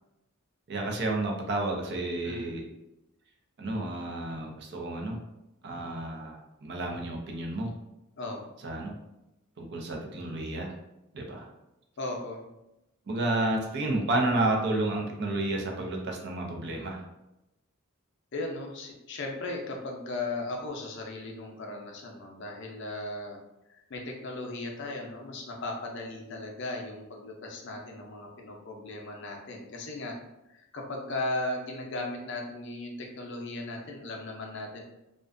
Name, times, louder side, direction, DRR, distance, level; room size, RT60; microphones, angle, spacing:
voice 1, 0.7-2.6 3.6-5.2 5.6-7.7 8.6-8.9 9.6-10.7 11.1-11.5 13.1-17.0, right 2 dB, 55° right, 1 dB, 0.5 m, -31 dB
voice 2, 2.2-2.7 8.2-8.5 12.0-12.4 18.3-23.4 23.7-30.2 30.5-34.8, left 2 dB, 55° left, 0 dB, 0.5 m, -37 dB
2.4 x 2.2 x 2.4 m, 0.91 s
head